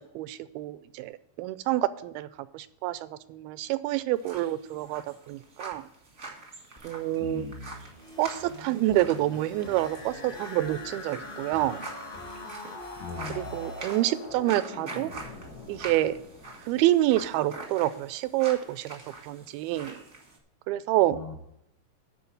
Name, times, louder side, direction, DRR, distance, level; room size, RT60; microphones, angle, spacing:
voice 1, 0.0-2.3 2.5-5.9 6.8-7.5 8.2-11.9 13.3-15.1 15.7-16.2 16.7-20.0 20.7-21.2, right 15 dB, 85° right, 15 dB, 2.4 m, -28 dB
sound 1, 4.1-20.4, right 3 dB, 45° right, 0.9 m, -45 dB
sound 2, 6.8-14.0, equal, 25° left, 0.9 m, -46 dB
voice 2, 7.2-7.8 13.0-13.7 21.1-21.4, left 5 dB, 70° left, 4 dB, 2.0 m, -39 dB
sound 3, 9.5-17.4, left 3 dB, 90° left, 0.8 m, -44 dB
11.5 x 4.5 x 7.0 m, 0.80 s
omnidirectional pair, 4.3 m